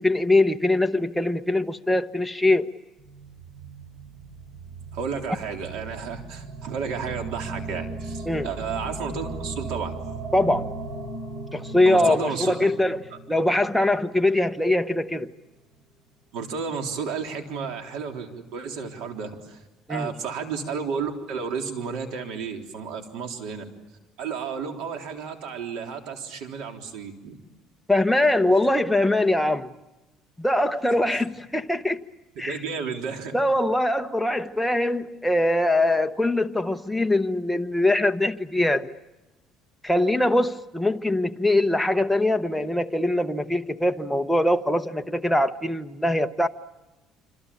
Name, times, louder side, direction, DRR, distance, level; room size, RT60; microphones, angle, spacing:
voice 1, 0.0-2.7 8.3-8.5 10.3-10.7 11.5-15.3 19.9-20.1 27.9-29.7 30.4-32.0 32.4-32.6 33.3-38.9 39.8-46.5, left 1 dB, 5° left, 0.9 m, -22 dB
sound 1, 3.0-15.2, right 3 dB, 35° right, 4.8 m, -37 dB
voice 2, 4.9-10.0 11.9-12.6 16.3-19.6 19.9-23.7 24.2-27.4 30.9-31.2 32.4-33.4, right 6 dB, 75° right, 3.6 m, -32 dB
26.5 x 26.0 x 8.6 m
cardioid pair, 150°, 0 cm